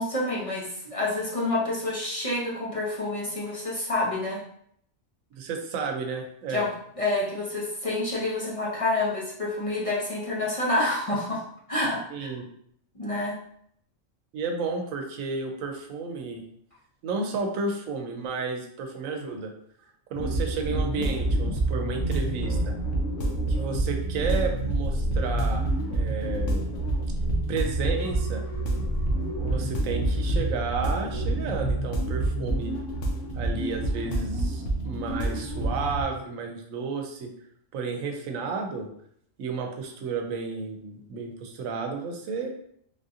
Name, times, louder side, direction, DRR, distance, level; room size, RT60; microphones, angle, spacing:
voice 1, 0.0-4.4 6.5-6.7 7.0-11.4 11.7-12.3 13.0-13.4, left 2 dB, 35° left, -5 dB, 0.6 m, -28 dB
voice 2, 5.4-6.7 12.1-12.4 14.3-16.4 17.0-19.5 20.1-22.7 23.5-25.6 25.9-26.7 27.5-28.4 29.4-32.7 33.4-37.3 37.7-38.9 39.4-42.5, right 4 dB, 90° right, 4 dB, 1.0 m, -32 dB
sound 1, 20.1-36.0, right 1 dB, 75° left, 1.0 m, -27 dB
3.6 x 2.7 x 2.4 m, 0.68 s
omnidirectional pair, 1.3 m